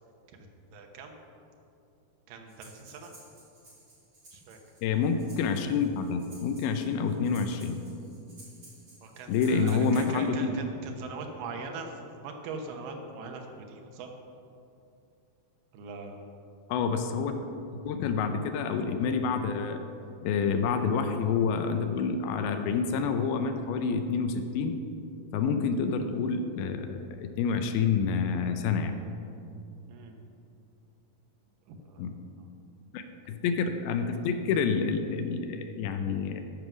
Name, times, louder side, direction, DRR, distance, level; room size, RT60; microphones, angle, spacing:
voice 1, 0.7-1.2 2.3-3.1 4.3-4.6 9.0-14.1 15.7-16.2 29.9-30.2 31.7-32.1, right 4 dB, 70° right, 3 dB, 2.5 m, -41 dB
Breathing, 2.5-10.3, right 2 dB, 30° right, 3.3 m, -54 dB
voice 2, 4.8-7.8 9.3-10.4 16.7-19.8 20.2-24.8 25.3-28.9 32.0-32.2 32.9-36.4, left 5 dB, 85° left, 7 dB, 2.5 m, -28 dB
13.5 x 5.5 x 6.1 m, 2.6 s
omnidirectional pair, 4.3 m